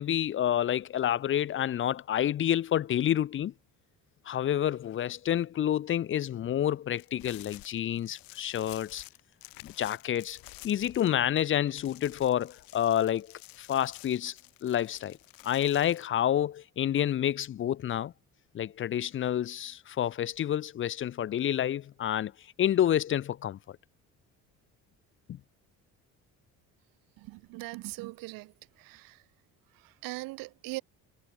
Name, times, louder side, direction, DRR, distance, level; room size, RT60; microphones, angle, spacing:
voice 1, 0.0-3.5 4.3-9.0 9.6-14.4 14.6-15.2 15.4-18.1 18.5-22.3 22.6-23.8, left 11 dB, 40° left, 0.5 m, -29 dB
sound 1, 7.0-11.4 11.7-16.1, left 20 dB, 85° left, 3.2 m, -51 dB
voice 2, 27.2-28.5 28.8-29.2 29.8-30.8, right 22 dB, 85° right, 0.9 m, -40 dB
cardioid pair, 95°, 34 cm